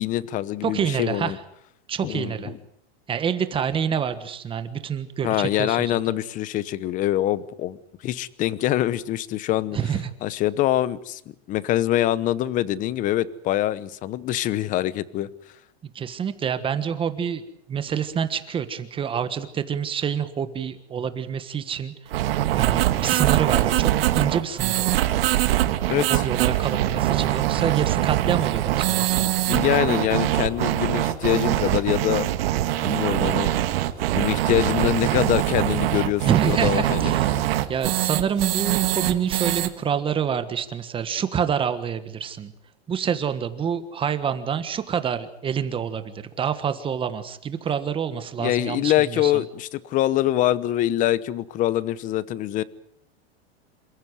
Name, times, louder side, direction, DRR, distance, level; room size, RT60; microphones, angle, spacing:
voice 1, 0.0-1.4 2.0-2.6 5.2-7.8 8.0-9.8 10.2-11.2 11.5-15.3 25.9-26.2 29.5-32.3 32.8-33.6 34.1-37.1 48.4-52.6, left 13 dB, 25° left, 18 dB, 0.9 m, -24 dB
voice 2, 0.6-1.4 1.9-2.5 3.1-6.0 9.7-10.1 15.9-21.9 22.5-25.1 26.1-29.2 36.2-42.5 42.9-49.3, right 7 dB, 15° right, 11 dB, 1.4 m, -27 dB
sound 1, 22.1-39.7, right 14 dB, 65° right, 2.2 m, -23 dB
27.5 x 15.0 x 9.5 m, 0.73 s
supercardioid pair, 155°, 32 cm